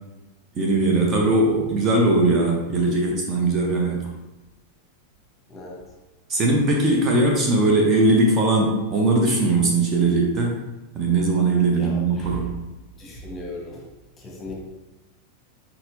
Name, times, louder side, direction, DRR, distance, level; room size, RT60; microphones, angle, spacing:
voice 1, 0.5-4.1 6.3-10.6 10.9-12.5, right 2 dB, 25° right, -1 dB, 0.8 m, -20 dB
voice 2, 5.5-5.8 11.7-12.4 13.0-13.9 14.2-14.6, equal, 20° left, -2 dB, 1.1 m, -37 dB
4.3 x 4.3 x 2.6 m, 1.1 s
figure-of-eight pair, 90°, 0 cm